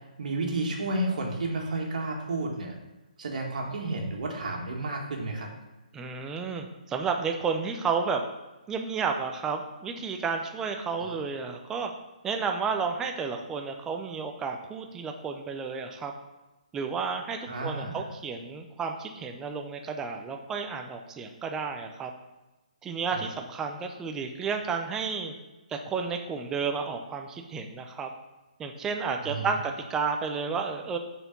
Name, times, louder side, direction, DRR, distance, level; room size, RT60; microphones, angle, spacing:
voice 1, 0.2-2.7 3.2-5.5 17.5-18.0 23.1-23.2 29.2-29.6, right 2 dB, 65° right, 0 dB, 1.7 m, -31 dB
voice 2, 5.9-8.2 8.7-11.9 12.2-16.1 16.7-22.1 22.8-25.3 25.7-28.1 28.6-31.0, right 5 dB, 10° right, 4 dB, 0.5 m, -32 dB
6.5 x 4.5 x 5.9 m, 1.1 s
hypercardioid pair, 155°, 5 cm